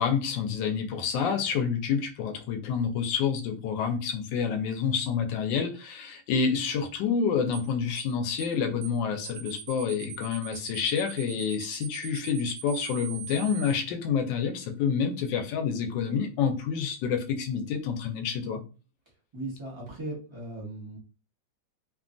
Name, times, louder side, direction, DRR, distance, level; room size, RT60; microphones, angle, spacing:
voice 1, 0.0-18.6, left 6 dB, 80° left, 5 dB, 1.3 m, -28 dB
sound 1, 7.5-7.7 8.0-8.1 8.4-8.6 8.8-9.0 9.2-13.7, right 10 dB, 85° right, 1.3 m, -41 dB
voice 2, 19.3-21.0, right 2 dB, 25° right, -4 dB, 0.7 m, -37 dB
3.1 x 2.2 x 2.5 m, 0.34 s
omnidirectional pair, 2.0 m